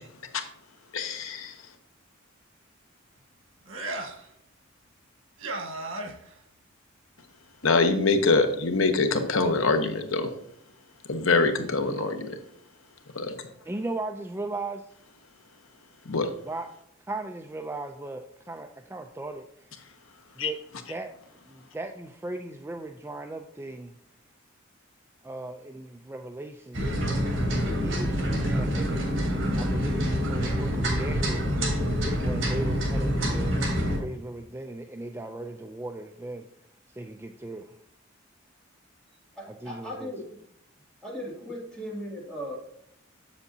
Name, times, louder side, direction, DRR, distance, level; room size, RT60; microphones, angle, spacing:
voice 1, 0.9-1.5 7.6-10.3 11.1-12.3 13.1-13.5 16.0-16.3 20.4-20.5, left 3 dB, 85° left, 7 dB, 0.9 m, -24 dB
sound 1, 3.6-4.2 5.4-6.3, right 2 dB, 85° right, 1.4 m, -34 dB
voice 2, 13.7-14.9 16.4-16.7 17.1-19.7 20.4-20.6 20.9-21.1 21.5-23.9 25.2-26.9 27.8-31.5 32.2-36.5 36.9-37.8 39.5-40.1, right 2 dB, 10° right, 4 dB, 0.4 m, -37 dB
sound 2, 26.7-34.0, equal, 60° right, 3.0 m, -26 dB
Bowed string instrument, 26.9-32.4, right 4 dB, 30° right, 3.1 m, -45 dB
voice 3, 39.3-40.2 41.0-42.6, equal, 5° left, -5 dB, 2.4 m, -37 dB
7.8 x 7.2 x 2.7 m, 0.76 s
head